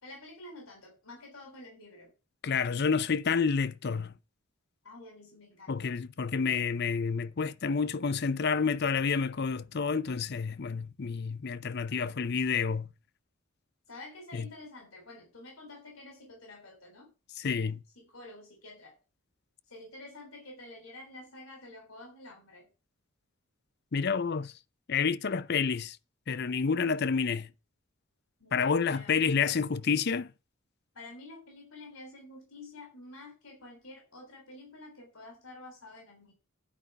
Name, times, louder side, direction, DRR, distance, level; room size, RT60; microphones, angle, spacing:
voice 1, 0.0-2.1 4.8-5.9 13.9-17.1 18.0-19.0 19.7-22.7 28.4-29.2 30.9-36.3, left 2 dB, 90° left, 3.8 m, -49 dB
voice 2, 2.4-4.1 5.7-12.9 14.3-14.5 17.4-17.8 23.9-24.5 24.9-26.0 26.3-27.5 28.5-30.3, left 5 dB, 50° left, 0.5 m, -29 dB
10.0 x 5.4 x 7.9 m
head